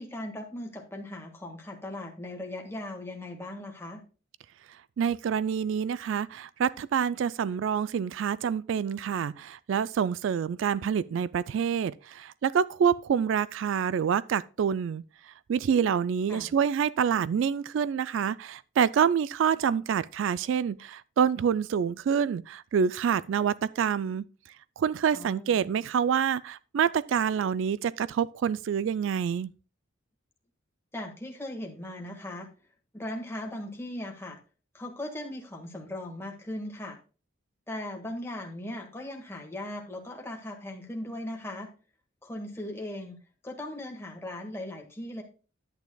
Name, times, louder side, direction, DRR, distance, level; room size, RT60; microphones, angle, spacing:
voice 1, 0.0-4.0 16.3-16.5 25.1-25.6 30.9-32.5 32.9-34.4 34.7-37.0 37.7-41.7 42.2-43.2 43.4-45.2, left 1 dB, 10° left, 1.6 m, -38 dB
voice 2, 5.0-24.2 24.8-29.5, right 7 dB, 65° right, 0.3 m, -27 dB
10.5 x 9.0 x 2.3 m
head